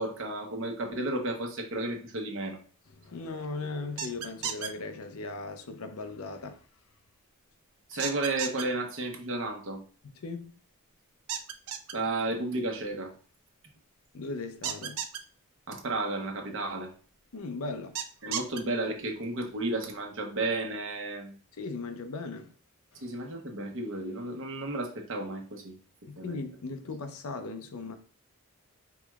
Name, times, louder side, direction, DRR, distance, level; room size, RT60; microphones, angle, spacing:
voice 1, 0.0-2.6 7.9-9.8 11.9-13.1 15.7-16.9 18.2-21.4 23.0-25.7 26.2-26.4, right 2 dB, 60° right, 0.9 m, -33 dB
voice 2, 3.0-6.6 7.9-8.0 10.0-10.5 14.1-15.1 17.3-18.0 21.6-22.5 22.9-23.1 26.1-28.0, left 3 dB, 70° left, 0.6 m, -38 dB
sound 1, 4.0-4.7 8.0-8.6 11.3-11.9 14.6-15.2 18.0-18.6, right 8 dB, 75° right, 0.5 m, -33 dB
4.8 x 3.1 x 2.3 m
head